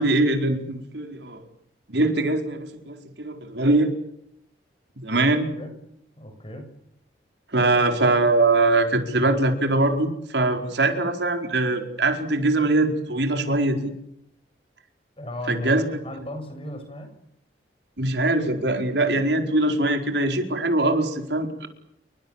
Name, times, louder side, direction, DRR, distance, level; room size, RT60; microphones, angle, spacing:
voice 1, 0.0-1.4 1.9-3.9 5.0-5.5 7.5-13.9 15.5-15.9 18.0-21.7, right 2 dB, 75° right, 5 dB, 4.7 m, -22 dB
voice 2, 6.2-6.7 15.2-17.1, left 1 dB, 30° left, 6 dB, 7.6 m, -36 dB
29.5 x 24.0 x 7.5 m, 0.76 s
head